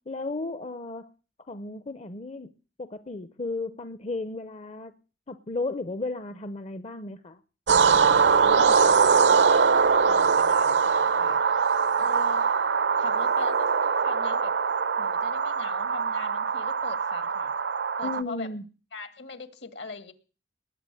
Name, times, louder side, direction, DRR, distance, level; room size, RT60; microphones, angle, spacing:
voice 1, 0.1-1.1 1.5-2.5 2.8-4.9 5.3-7.4 18.0-18.6, left 2 dB, 35° left, 0.7 m, -34 dB
sound 1, 7.7-18.2, right 5 dB, 75° right, 0.7 m, -22 dB
voice 2, 8.3-9.5 10.1-11.4 12.0-12.5 13.0-14.5 15.0-17.5 18.0-18.5 18.9-20.1, left 3 dB, 70° left, 2.1 m, -40 dB
20.0 x 6.8 x 9.8 m
head